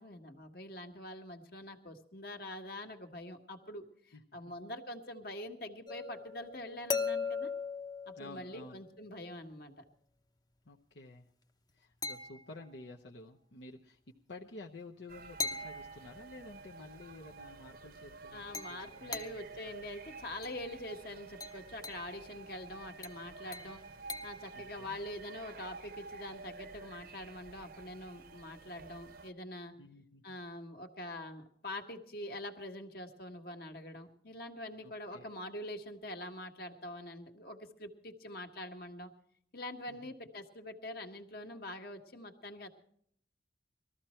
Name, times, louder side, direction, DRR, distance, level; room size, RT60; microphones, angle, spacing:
voice 1, 0.0-7.5 8.1-9.8 18.3-23.8 24.2-29.7 30.2-39.1 39.5-42.7, left 1 dB, 55° left, 4 dB, 1.6 m, -45 dB
voice 2, 4.1-4.5 8.2-8.8 10.7-11.3 11.7-14.0 14.3-19.3 24.5-25.0 29.8-30.4 34.8-35.3 39.9-40.1, left 2 dB, 80° left, 0 dB, 0.9 m, -51 dB
sound 1, 5.9-8.9 12.0-12.8 15.4-16.6 18.5-19.6 20.4-20.7 21.4-22.1 23.0-24.5, left 4 dB, 20° left, 0.7 m, -40 dB
sound 2, 15.1-29.3, right 4 dB, 55° right, 0.8 m, -51 dB
20.0 x 14.0 x 4.4 m, 0.66 s
head